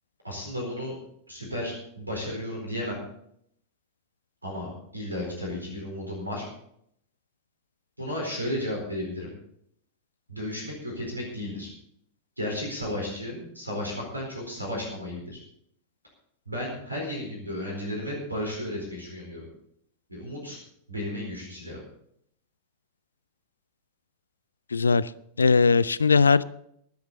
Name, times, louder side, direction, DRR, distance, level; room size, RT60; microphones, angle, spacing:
voice 1, 0.2-0.9 1.3-3.0 4.4-6.5 8.0-9.3 10.3-11.7 12.4-15.4 16.5-19.5 20.1-20.6 20.9-21.8, left 1 dB, 85° right, -1 dB, 4.4 m, -33 dB
voice 2, 24.7-25.1 25.4-26.4, left 4 dB, 75° left, 18 dB, 0.4 m, -19 dB
23.5 x 8.0 x 4.1 m, 0.71 s
figure-of-eight pair, 90°, 0 cm